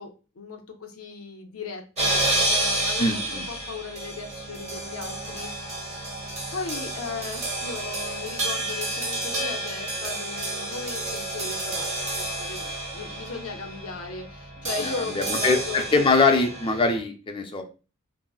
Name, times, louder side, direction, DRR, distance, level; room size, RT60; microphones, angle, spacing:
voice 1, 0.0-5.7 6.5-15.8, left 4 dB, 70° left, 3 dB, 0.5 m, -37 dB
sound 1, 2.0-17.0, right 2 dB, 30° right, 0.9 m, -30 dB
voice 2, 3.0-3.4 14.8-17.6, left 3 dB, 25° left, 4 dB, 0.4 m, -23 dB
3.7 x 2.0 x 2.3 m, 0.33 s
head